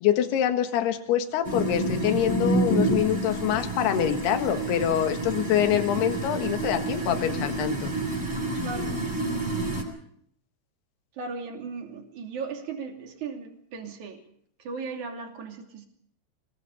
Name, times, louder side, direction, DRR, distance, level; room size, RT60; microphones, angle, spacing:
voice 1, 0.0-7.9, left 10 dB, 70° left, 7 dB, 3.5 m, -25 dB
sound 1, 1.4-9.8, right 2 dB, 10° right, 7.1 m, -28 dB
voice 2, 8.6-9.0 11.1-14.2 14.6-15.9, right 4 dB, 45° right, 3 dB, 3.9 m, -37 dB
26.0 x 20.5 x 5.6 m, 0.68 s
omnidirectional pair, 5.0 m